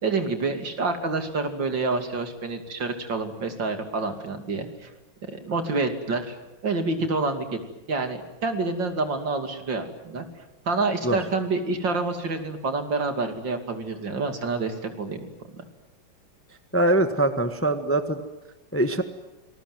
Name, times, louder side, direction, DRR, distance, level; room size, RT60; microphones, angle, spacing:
voice 1, 0.0-4.9 5.3-6.4 6.6-7.6 7.9-10.2 10.7-15.3 15.5-15.6, right 3 dB, 65° right, 6 dB, 3.3 m, -28 dB
voice 2, 16.7-18.2 18.7-19.0, right 1 dB, 10° left, 8 dB, 1.2 m, -22 dB
27.0 x 20.5 x 9.4 m, 1.0 s
omnidirectional pair, 2.2 m